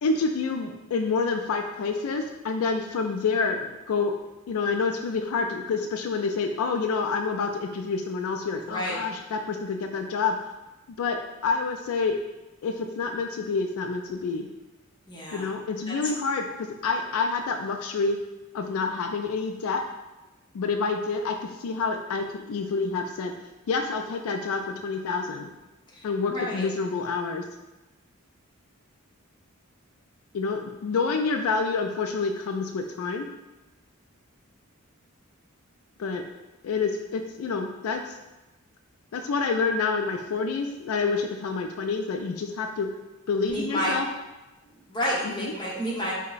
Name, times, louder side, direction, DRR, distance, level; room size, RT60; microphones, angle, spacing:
voice 1, 0.0-4.1 4.5-10.4 11.0-12.2 12.6-14.5 15.3-18.2 18.5-19.8 20.5-23.3 23.7-25.5 26.0-27.4 30.3-33.3 36.0-36.2 36.6-38.1 39.1-42.9 43.3-44.1 45.2-45.5, left 4 dB, 80° left, 4 dB, 0.3 m, -28 dB
voice 2, 8.6-9.0 15.1-15.5 15.9-16.0 26.3-26.7 43.5-43.9 44.9-46.1, equal, 20° left, -5 dB, 0.8 m, -30 dB
4.5 x 2.1 x 3.9 m, 1.0 s
head